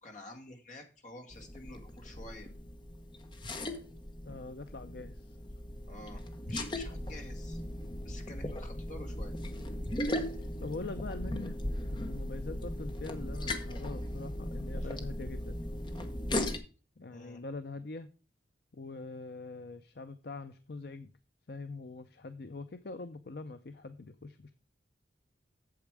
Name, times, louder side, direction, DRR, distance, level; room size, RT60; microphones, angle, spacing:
voice 1, 0.0-2.5 5.9-7.6 8.0-9.4 14.8-14.9 17.1-17.4, left 1 dB, 40° left, 3 dB, 2.0 m, -49 dB
sound 1, 1.3-16.6, left 1 dB, 25° left, 1.0 m, -38 dB
voice 2, 4.3-5.4 10.6-11.6 11.9-15.6 17.0-18.1 18.7-21.1 21.5-24.5, left 3 dB, 60° left, 10 dB, 0.6 m, -43 dB
8.5 x 7.5 x 4.7 m, 0.35 s
head